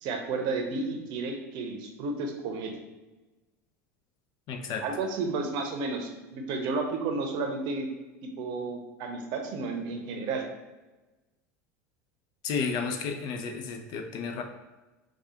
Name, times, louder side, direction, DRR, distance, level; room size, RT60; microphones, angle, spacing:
voice 1, 0.0-2.7 4.8-7.9 8.2-10.4, right 3 dB, 55° right, 3 dB, 0.7 m, -32 dB
voice 2, 4.5-4.8 12.4-14.4, left 5 dB, 50° left, 4 dB, 0.5 m, -32 dB
4.7 x 2.3 x 2.8 m, 1.1 s
hypercardioid pair, 85°, 9 cm